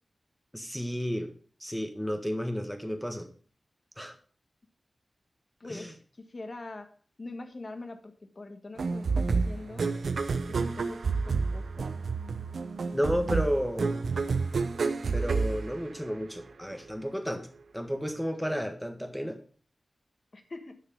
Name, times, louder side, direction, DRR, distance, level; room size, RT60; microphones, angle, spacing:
voice 1, 0.5-1.3 1.6-3.3 4.0-4.1 5.6-5.9 12.9-14.0 15.1-17.5 17.7-19.4, equal, ahead, 6 dB, 1.6 m, -32 dB
voice 2, 5.6-5.9 6.3-6.9 7.2-9.9 10.5-11.9 20.3-20.8, left 2 dB, 45° left, 7 dB, 1.5 m, -43 dB
sound 1, 8.8-16.4, right 4 dB, 85° right, 0.7 m, -29 dB
10.5 x 6.4 x 5.2 m, 0.42 s
wide cardioid pair, 75°, 0 cm